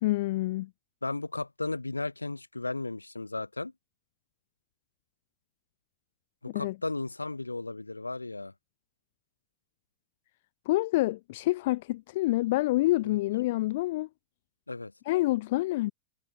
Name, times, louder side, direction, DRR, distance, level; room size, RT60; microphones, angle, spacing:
voice 1, 0.0-0.7 6.5-6.7 10.6-14.1 15.0-15.9, left 18 dB, 50° left, 1.5 m, -27 dB
voice 2, 1.0-3.7 6.4-8.5 13.0-13.2 14.7-14.9, left 2 dB, 80° left, 3.9 m, -35 dB
figure-of-eight pair, 90°, 0 cm